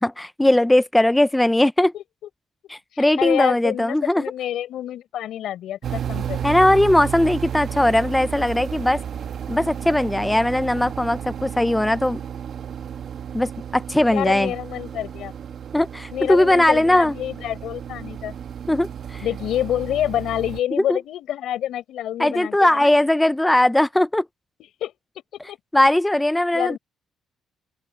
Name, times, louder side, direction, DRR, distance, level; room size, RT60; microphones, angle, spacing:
voice 1, 0.0-1.9 2.7-4.2 6.4-9.0 9.5-12.2 13.3-14.5 15.7-17.1 18.7-19.2 20.9-21.0 22.2-24.2 25.7-26.8, left 1 dB, 10° left, 0.6 m, -19 dB
voice 2, 2.9-6.4 14.1-15.3 16.1-18.4 19.2-22.9 24.8-24.9 25.5-25.6 26.5-26.8, left 12 dB, 80° left, 4.7 m, -27 dB
sound 1, 5.8-20.6, right 9 dB, 60° right, 1.2 m, -33 dB
open air
cardioid pair, 90°, 0 cm